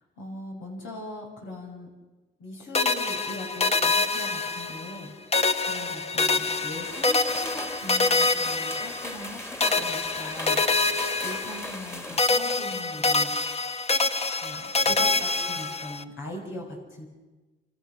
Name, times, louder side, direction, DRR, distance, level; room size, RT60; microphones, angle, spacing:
voice 1, 0.2-1.9 2.4-10.9 11.2-13.3 14.4-17.1, left 1 dB, 75° left, 0 dB, 6.3 m, -40 dB
sound 1, 2.7-5.0 5.3-9.3 9.6-11.9 12.2-16.0, left 3 dB, 30° left, 1.3 m, -26 dB
sound 2, 6.8-12.2, left 1 dB, 15° left, 2.5 m, -38 dB
28.5 x 25.5 x 6.4 m, 1.2 s
cardioid pair, 90°, 20 cm